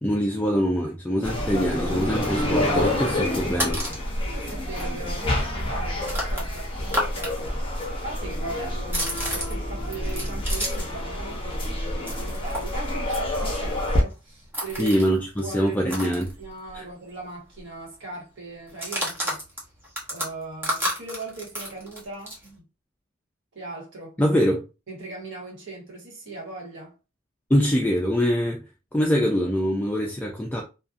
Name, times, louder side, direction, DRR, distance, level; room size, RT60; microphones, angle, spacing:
voice 1, 0.0-3.8 14.8-16.3 16.7-16.9 24.2-24.6 27.5-28.6 28.9-30.6, equal, 10° left, 0.3 m, -23 dB
sound 1, 1.2-14.0, left 1 dB, 25° left, 0.7 m, -27 dB
sound 2, 3.4-4.1 4.5-4.6 4.8-7.3 7.6-11.0 11.3-16.9 17.2-17.3 17.6-17.9 18.7-22.5, equal, 10° right, 0.8 m, -32 dB
voice 2, 4.3-7.5 8.0-15.0 15.4-19.4 20.1-22.6 23.5-24.2 24.9-26.9, right 3 dB, 65° right, 1.3 m, -39 dB
2.5 x 2.4 x 2.5 m
head